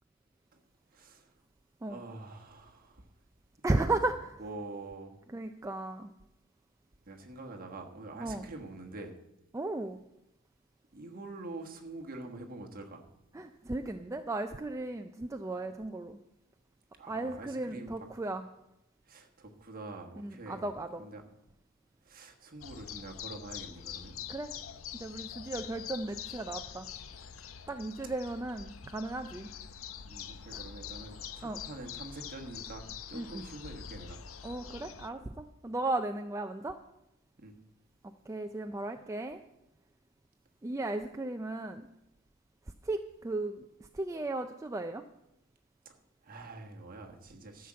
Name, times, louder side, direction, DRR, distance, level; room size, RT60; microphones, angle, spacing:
voice 1, 0.9-1.3 1.9-3.1 3.6-4.0 4.4-5.2 7.0-9.2 10.9-13.1 16.9-18.1 19.0-21.2 22.0-24.2 30.1-34.2 37.4-37.5 46.2-47.7, right 2 dB, 40° right, 3 dB, 1.4 m, -46 dB
voice 2, 3.6-4.1 5.3-6.1 8.2-8.5 9.5-10.0 13.3-16.2 17.1-18.4 20.2-21.0 24.3-24.5 24.9-26.9 27.7-29.5 30.5-30.6 31.4-31.6 33.1-33.4 34.4-36.8 38.3-39.4 40.6-41.9 42.8-43.7 43.9-45.0, right 2 dB, 15° right, 6 dB, 0.3 m, -35 dB
sound 1, 22.6-35.1, left 8 dB, 70° left, 0.6 m, -45 dB
13.0 x 5.9 x 7.5 m, 0.89 s
head